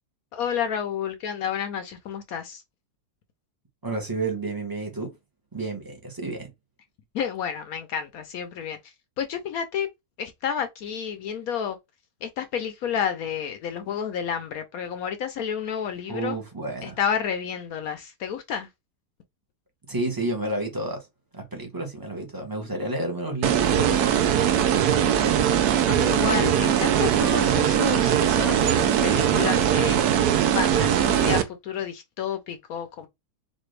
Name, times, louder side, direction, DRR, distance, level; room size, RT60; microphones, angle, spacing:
voice 1, 0.3-2.6 7.1-9.9 10.2-11.8 12.2-16.4 16.8-18.7 25.9-30.0 30.5-33.1, left 8 dB, 70° left, 0.9 m, -30 dB
voice 2, 3.8-5.2 5.5-6.5 16.1-17.0 19.9-21.1 21.3-24.4 24.7-25.4, right 2 dB, 20° right, 0.7 m, -31 dB
sound 1, 23.4-31.4, right 9 dB, 75° right, 1.1 m, -21 dB
4.1 x 2.5 x 3.2 m
omnidirectional pair, 1.8 m